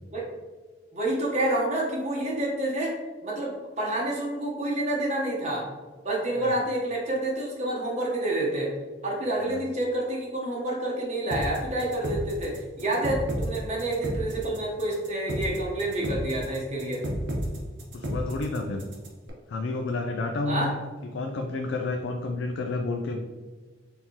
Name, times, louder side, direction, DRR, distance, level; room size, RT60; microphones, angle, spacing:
voice 1, 0.9-2.9 3.2-5.6 6.0-8.7 9.0-17.1 20.5-20.7, right 1 dB, 35° right, -3 dB, 0.8 m, -28 dB
sound 1, 11.3-19.3, equal, 70° right, 0.9 m, -32 dB
voice 2, 17.9-18.8 19.5-20.7 21.1-23.2, left 3 dB, 75° left, 3 dB, 0.4 m, -30 dB
4.4 x 3.6 x 2.8 m, 1.3 s
head